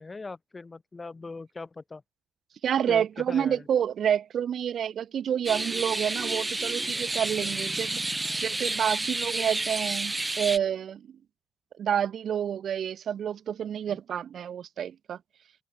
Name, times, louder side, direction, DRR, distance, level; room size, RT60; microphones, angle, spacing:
voice 1, 0.0-2.0 2.9-3.7 13.9-14.0, left 3 dB, 25° left, 7.8 m, -40 dB
voice 2, 2.6-8.0 8.4-11.0 11.8-15.2, right 9 dB, 65° right, 4.0 m, -28 dB
sound 1, 5.4-10.6, right 2 dB, 20° right, 0.9 m, -30 dB
cardioid pair, 75°, 0 cm